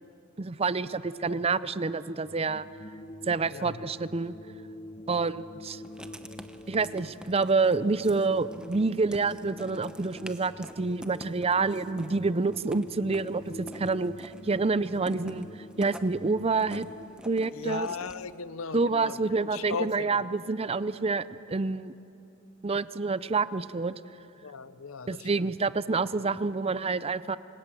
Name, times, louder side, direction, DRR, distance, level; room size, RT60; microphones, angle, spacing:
voice 1, 0.4-2.7 3.3-4.3 5.1-5.8 6.7-15.5 15.8-16.9 17.2-17.9 18.7-21.9 22.6-23.9 25.1-27.4, right 4 dB, 30° right, 0.5 m, -28 dB
sound 1, 2.2-17.1, left 1 dB, 25° left, 0.9 m, -46 dB
Writing, 5.8-18.3, equal, 5° right, 0.9 m, -48 dB
voice 2, 17.5-19.2 19.4-20.3 24.4-25.5, left 5 dB, 75° left, 0.8 m, -37 dB
26.0 x 20.0 x 9.1 m
head